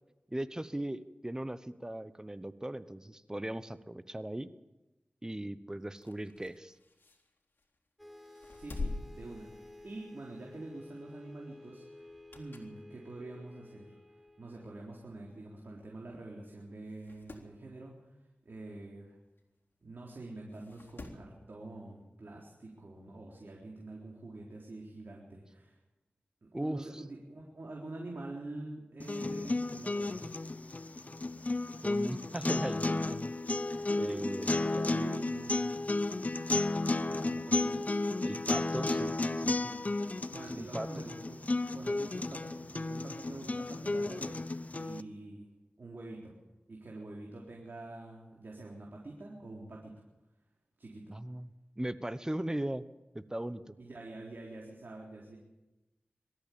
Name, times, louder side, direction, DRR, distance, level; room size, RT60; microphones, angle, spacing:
voice 1, 0.3-4.5 5.2-6.7 26.5-27.0 31.8-33.3 33.9-34.6 38.2-39.7 40.6-40.9 51.1-52.8 53.1-53.7, right 1 dB, 15° right, 12 dB, 1.0 m, -38 dB
sound 1, 5.8-7.8 8.3-10.1 10.5-10.7 12.0-12.8 13.3-13.4 14.3-14.4 14.6-14.7 14.9-15.0 15.9-16.0 16.4-16.5 16.8-17.5 19.4-19.5 20.5-21.3 22.6-22.7, left 3 dB, 65° left, 3.6 m, -45 dB
sound 2, 8.0-15.7, left 2 dB, ahead, 2.4 m, -54 dB
voice 2, 8.6-9.5 9.8-12.1 12.3-13.9 14.4-18.1 18.4-19.1 19.8-25.8 26.4-30.3 34.5-35.7 37.1-38.0 40.3-41.4 41.7-45.5 45.8-46.3 46.7-50.1 50.8-51.1 53.8-55.4, right 2 dB, 65° right, -2 dB, 3.9 m, -46 dB
sound 3, 29.0-45.0, left 2 dB, 40° left, 0.9 m, -33 dB
23.5 x 13.5 x 8.7 m, 1.0 s
wide cardioid pair, 65°, 4 cm